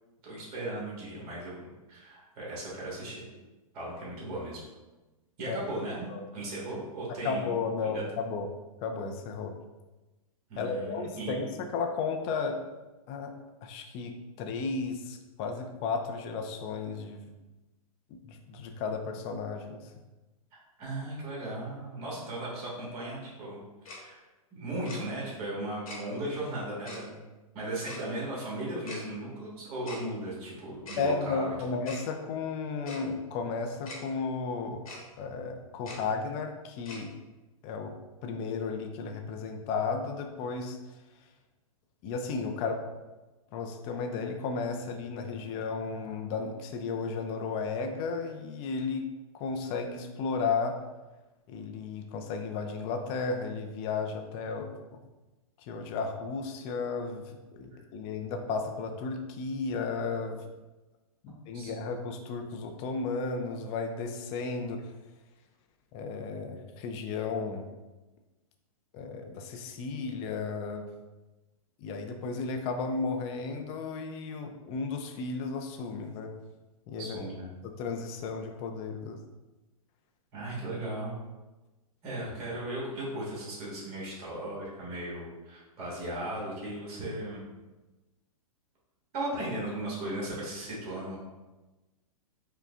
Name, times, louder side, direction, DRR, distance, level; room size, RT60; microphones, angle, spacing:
voice 1, 0.2-1.6 1.9-3.3 3.7-4.6 5.4-7.5 7.8-8.0 10.5-11.4 20.8-24.2 24.5-27.2 27.5-31.5 57.7-57.8 61.5-61.7 77.0-77.5 80.3-81.2 82.0-87.5 89.1-91.2, right 1 dB, 40° right, -5 dB, 1.5 m, -37 dB
voice 2, 7.2-8.5 8.8-9.5 10.6-12.6 13.1-13.3 13.6-17.3 18.3-19.9 31.0-34.8 35.2-37.1 37.6-37.9 38.2-40.8 42.0-42.8 43.5-49.1 49.3-50.8 51.5-55.0 55.6-60.4 61.2-64.9 65.9-67.7 68.9-70.9 71.8-76.3 76.9-77.1 77.8-79.2, left 4 dB, 30° left, 4 dB, 0.4 m, -34 dB
Tick-tock, 23.9-24.0 24.9-25.0 25.9-26.0 26.9-27.0 27.9-28.0 28.9-29.0 29.9-30.0 30.9-31.0 31.9-32.0 32.9-33.0 33.9-34.0 34.9-35.0 35.9-36.0 36.9-37.0, left 3 dB, 75° left, 1.2 m, -42 dB
4.8 x 2.2 x 2.4 m, 1.1 s
hypercardioid pair, 120°, 19 cm